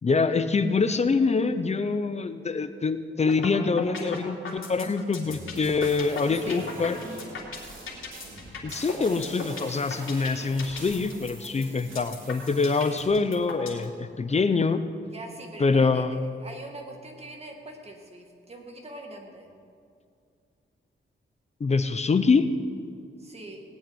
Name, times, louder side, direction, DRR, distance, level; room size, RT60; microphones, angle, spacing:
voice 1, 0.0-7.0 8.6-14.8 15.6-16.2 21.6-22.5, left 4 dB, 35° left, 11 dB, 0.6 m, -25 dB
sound 1, 3.3-3.5 3.8-13.8, left 5 dB, 80° left, 3.1 m, -37 dB
sound 2, 5.1-13.1, right 2 dB, 75° right, 3.6 m, -45 dB
voice 2, 6.2-6.7 15.1-19.5 23.2-23.6, right 2 dB, 30° right, 1 dB, 2.1 m, -42 dB
18.5 x 6.5 x 9.8 m, 2.4 s
wide cardioid pair, 155°, 21 cm